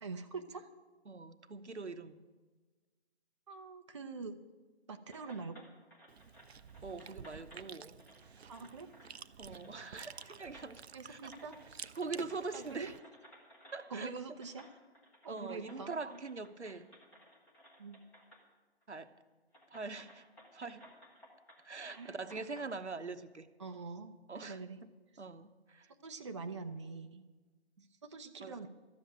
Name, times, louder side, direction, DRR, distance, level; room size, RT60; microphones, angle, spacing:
voice 1, 0.0-0.7 3.5-4.4 4.9-5.7 8.5-8.9 10.9-11.6 12.5-12.9 13.9-14.7 15.2-16.2 17.8-18.0 21.9-22.1 23.6-24.1 24.4-24.8 26.0-27.2 28.0-28.7, right 4 dB, 25° right, 5 dB, 0.5 m, -44 dB
voice 2, 1.1-2.2 6.8-8.0 9.4-11.4 12.0-12.9 13.7-14.2 15.3-16.9 18.9-19.1 19.7-20.2 20.5-20.9 21.6-23.5 24.3-25.9 27.8-27.9 28.4-28.7, right 4 dB, 85° right, 9 dB, 1.0 m, -43 dB
sound 1, 5.1-7.7 8.0-9.2 9.5-10.9 11.3-11.7 11.9-13.9 14.4-18.4 18.8-18.9 19.5-22.7, equal, 5° left, 0.9 m, -59 dB
Chewing mastication, 6.1-13.0, right 7 dB, 70° right, 0.6 m, -51 dB
13.0 x 7.6 x 8.6 m, 1.3 s
figure-of-eight pair, 145°, 33 cm